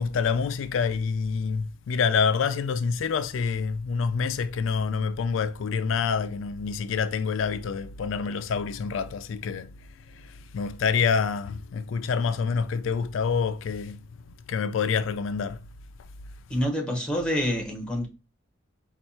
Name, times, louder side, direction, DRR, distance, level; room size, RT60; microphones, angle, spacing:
voice 1, 0.0-9.7 10.1-14.0 14.5-15.6, left 5 dB, 70° left, 0.4 m, -27 dB
voice 2, 16.5-18.1, equal, 5° left, 1.1 m, -27 dB
4.4 x 2.4 x 4.1 m
head